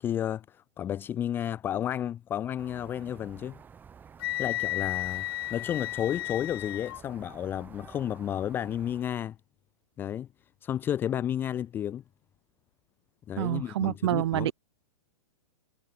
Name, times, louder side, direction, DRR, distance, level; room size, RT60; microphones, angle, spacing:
voice 1, 0.0-3.6 4.4-9.4 10.0-10.3 10.6-12.0 13.3-14.5, left 10 dB, 10° left, 0.7 m, -32 dB
sound 1, 2.6-9.0, right 7 dB, 10° right, 2.0 m, -51 dB
Wind instrument woodwind instrument, 4.2-7.0, left 16 dB, 40° left, 1.7 m, -33 dB
voice 2, 13.4-14.5, right 13 dB, 50° right, 1.3 m, -27 dB
hypercardioid pair, 165°, 18 cm